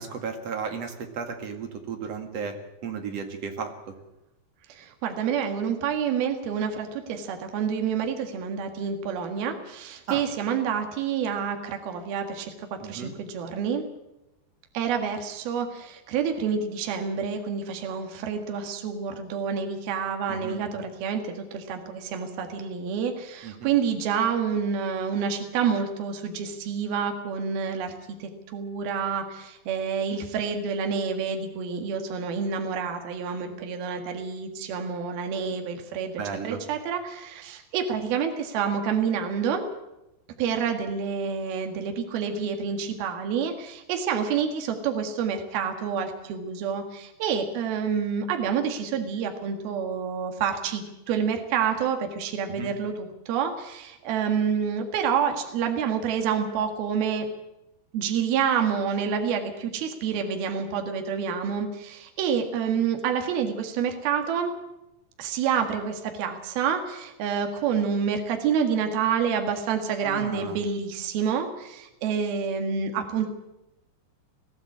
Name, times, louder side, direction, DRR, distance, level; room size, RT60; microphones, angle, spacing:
voice 1, 0.0-2.6 2.8-3.9 10.1-10.2 12.8-13.1 20.4-20.6 23.4-23.7 36.2-36.6 52.6-52.7 70.0-70.6, right 6 dB, 45° right, 5 dB, 2.5 m, -34 dB
voice 2, 4.7-13.8 14.7-27.9 28.2-36.1 36.4-39.6 40.4-57.3 57.9-64.5 65.2-73.3, right 7 dB, 65° right, 5 dB, 3.5 m, -28 dB
21.5 x 15.0 x 8.5 m, 0.93 s
omnidirectional pair, 5.0 m